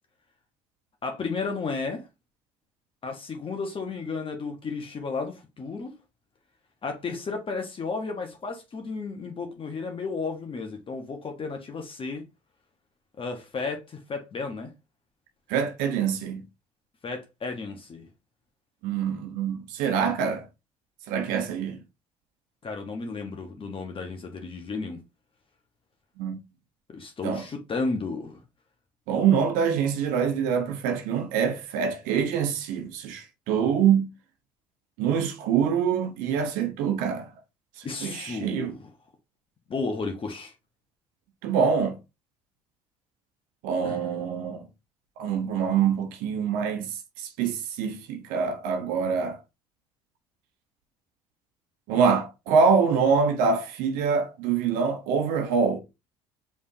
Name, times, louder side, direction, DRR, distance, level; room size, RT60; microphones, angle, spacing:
voice 1, 1.0-2.1 3.0-6.0 6.8-12.2 13.2-14.7 17.0-18.1 22.6-25.0 26.9-28.4 37.8-38.8 39.7-40.5 43.8-44.0, left 4 dB, 35° left, 1.3 m, -33 dB
voice 2, 15.5-16.4 18.8-20.5 21.1-21.8 26.2-26.4 27.2-27.4 29.1-34.1 35.0-37.3 38.0-38.7 41.4-42.0 43.6-44.7 45.2-49.4 51.9-55.8, right 6 dB, 70° right, 1.0 m, -25 dB
5.2 x 3.5 x 2.8 m
hypercardioid pair, 60°, 15 cm